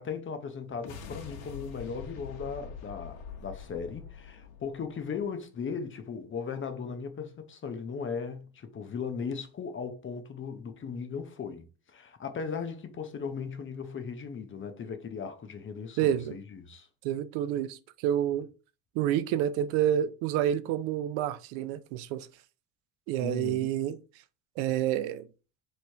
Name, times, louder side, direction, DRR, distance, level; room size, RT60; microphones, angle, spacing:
voice 1, 0.0-16.9 23.2-23.7, left 6 dB, 25° left, 0.6 m, -37 dB
sound 1, 0.7-5.2, left 6 dB, 80° left, 1.2 m, -44 dB
voice 2, 16.0-16.3 17.0-18.5 19.0-22.3 23.1-24.0 24.6-25.3, right 11 dB, 90° right, 0.6 m, -28 dB
3.4 x 3.2 x 4.4 m
cardioid pair, 135°, 46 cm